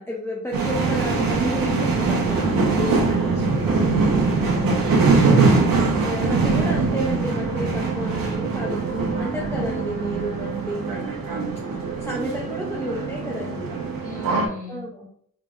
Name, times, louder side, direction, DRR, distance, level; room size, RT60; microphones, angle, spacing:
voice 1, 0.0-4.3 6.0-11.5 12.0-13.8 14.7-15.1, left 1 dB, 5° left, -4 dB, 0.7 m, -31 dB
sound 1, 0.5-14.5, right 4 dB, 70° right, 1.2 m, -22 dB
sound 2, 2.1-12.4, right 7 dB, 50° right, 0.8 m, -37 dB
voice 2, 4.4-5.7 14.0-14.9, left 3 dB, 20° left, -3 dB, 1.5 m, -38 dB
5.4 x 3.6 x 2.6 m, 0.64 s
wide cardioid pair, 170°, 36 cm